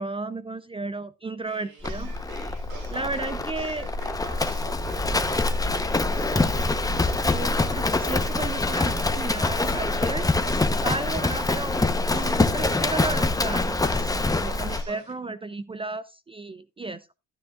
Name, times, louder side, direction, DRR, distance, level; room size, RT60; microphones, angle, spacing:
voice 1, 0.0-2.1 2.9-3.9 7.2-10.2 10.7-17.0, right 3 dB, 15° right, 14 dB, 0.4 m, -33 dB
sound 1, 1.4-15.1, right 5 dB, 70° right, 3.7 m, -45 dB
Livestock farm animals working animals, 1.8-14.9, left 3 dB, 10° left, 0.8 m, -25 dB
12.0 x 9.9 x 2.4 m, 0.26 s
supercardioid pair, 90°, 38 cm